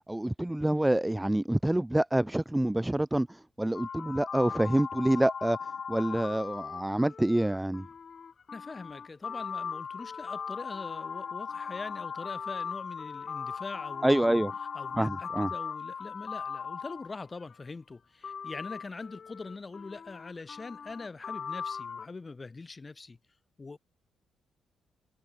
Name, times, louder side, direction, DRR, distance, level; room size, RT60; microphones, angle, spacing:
voice 1, 0.1-7.9 14.0-14.5 15.0-15.5, right 1 dB, 5° right, 0.5 m, -27 dB
sound 1, 3.7-17.6 18.2-22.1, left 6 dB, 35° left, 4.7 m, -39 dB
voice 2, 8.5-14.4 14.7-23.2 23.6-23.8, left 3 dB, 20° left, 3.6 m, -43 dB
cardioid pair, 170°, 0 cm